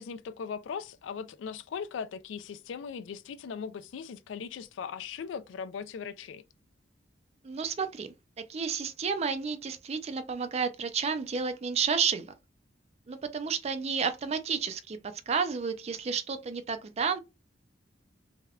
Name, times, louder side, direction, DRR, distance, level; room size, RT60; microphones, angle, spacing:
voice 1, 0.0-6.4, left 6 dB, 80° left, 0.3 m, -39 dB
voice 2, 7.4-8.1 8.5-12.3 13.1-15.0 15.3-17.2, right 6 dB, 35° right, 0.4 m, -31 dB
3.4 x 2.2 x 2.3 m
head